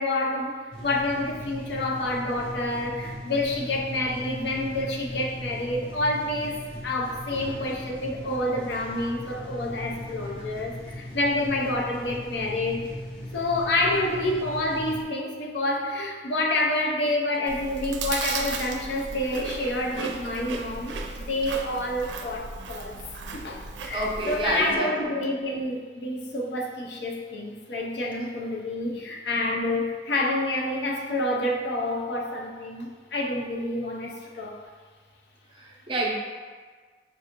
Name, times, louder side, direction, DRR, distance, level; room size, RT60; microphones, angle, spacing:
voice 1, 0.0-12.8 13.3-21.0 21.3-23.0 23.3-34.6, left 1 dB, 70° left, 0 dB, 0.5 m, -28 dB
sound 1, 0.7-15.0, left 1 dB, 25° left, 0.7 m, -39 dB
voice 2, 7.3-7.7 23.9-25.1 28.9-29.0 35.6-36.1, right 1 dB, 30° right, -2 dB, 0.5 m, -29 dB
Chewing mastication, 17.5-24.8, right 4 dB, 90° right, 0.4 m, -35 dB
5.3 x 2.5 x 2.9 m, 1.5 s
head